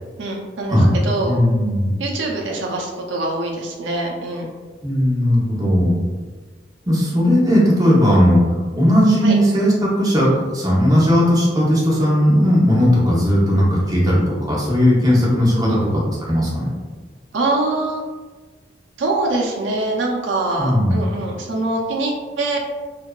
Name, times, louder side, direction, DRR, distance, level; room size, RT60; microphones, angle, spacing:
voice 1, 0.2-1.4 2.0-4.5 9.2-9.4 15.5-15.8 17.3-18.0 19.0-22.6, right 2 dB, 85° right, -1 dB, 0.4 m, -24 dB
voice 2, 1.3-1.9 4.8-6.0 6.9-8.4 8.7-15.8 16.2-16.7 20.6-21.0, equal, 20° right, -6 dB, 0.7 m, -16 dB
2.6 x 2.2 x 2.2 m, 1.4 s
head